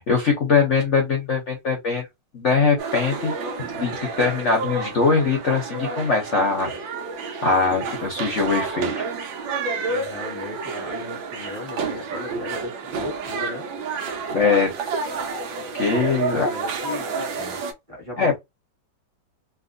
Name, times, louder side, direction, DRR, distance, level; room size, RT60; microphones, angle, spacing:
voice 1, 0.0-2.0 2.3-3.3 3.7-3.9 4.2-6.7 7.4-8.9 14.3-14.7 15.7-16.5 18.2-18.3, left 4 dB, 55° left, 0.9 m, -21 dB
sound 1, 2.8-17.7, right 4 dB, 80° right, 1.6 m, -30 dB
voice 2, 9.9-13.6 15.9-17.6 17.9-18.4, left 3 dB, 20° right, 1.3 m, -36 dB
3.3 x 2.8 x 2.6 m
omnidirectional pair, 2.1 m